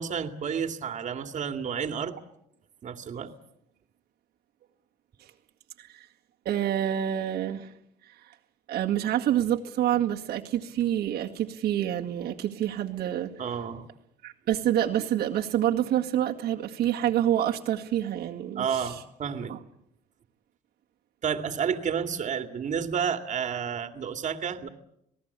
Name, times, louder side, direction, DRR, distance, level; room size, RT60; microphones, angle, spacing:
voice 1, 0.0-2.1 2.8-3.3 13.4-13.9 18.6-19.5 21.2-24.7, right 7 dB, 45° right, 2.3 m, -30 dB
voice 2, 6.5-7.7 8.2-8.3 8.7-13.3 14.2-18.9 19.5-19.6, right 11 dB, 70° right, 2.1 m, -27 dB
27.0 x 18.5 x 8.3 m
cardioid pair, 110°, 17 cm